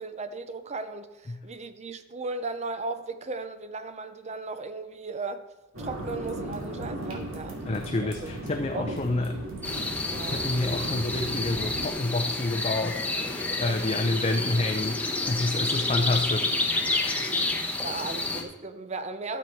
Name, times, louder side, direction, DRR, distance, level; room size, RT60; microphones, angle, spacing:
voice 1, 0.0-5.5 5.8-8.3 8.7-9.2 10.1-10.4 13.6-13.7 17.8-19.4, right 3 dB, 35° right, 10 dB, 0.6 m, -36 dB
sound 1, 5.7-11.9, right 1 dB, 75° right, 2.3 m, -37 dB
voice 2, 7.6-9.4 10.1-17.6, left 2 dB, 30° left, 3 dB, 0.6 m, -29 dB
sound 2, 9.6-18.4, left 2 dB, 5° left, 1.0 m, -29 dB
12.5 x 7.1 x 4.5 m, 1.1 s
head